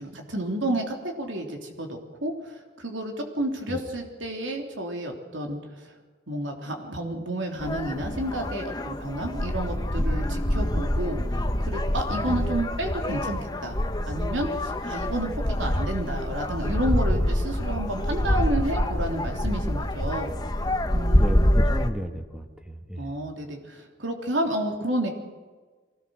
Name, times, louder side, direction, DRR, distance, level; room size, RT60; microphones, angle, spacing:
voice 1, 0.0-5.8 6.3-11.2 11.6-13.8 14.1-20.3 20.9-21.5 23.0-25.1, right 1 dB, 80° right, 2 dB, 3.3 m, -31 dB
sound 1, 7.6-21.9, left 1 dB, 20° left, 1.1 m, -26 dB
voice 2, 12.2-12.6 21.2-23.0, equal, 5° right, 5 dB, 1.5 m, -33 dB
24.5 x 18.0 x 6.5 m, 1.4 s
head